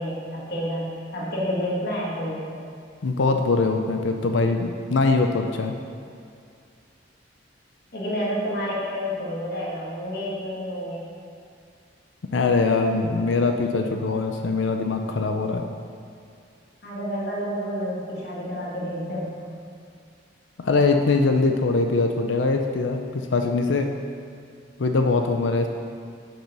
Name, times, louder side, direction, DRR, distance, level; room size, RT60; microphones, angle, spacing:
voice 1, 0.0-2.7 7.9-11.1 16.8-19.6, equal, 55° left, -5 dB, 1.9 m, -29 dB
voice 2, 3.0-5.7 12.3-15.6 20.6-23.9 24.8-25.7, left 3 dB, 80° left, 4 dB, 0.5 m, -22 dB
7.2 x 6.3 x 5.4 m, 2.3 s
head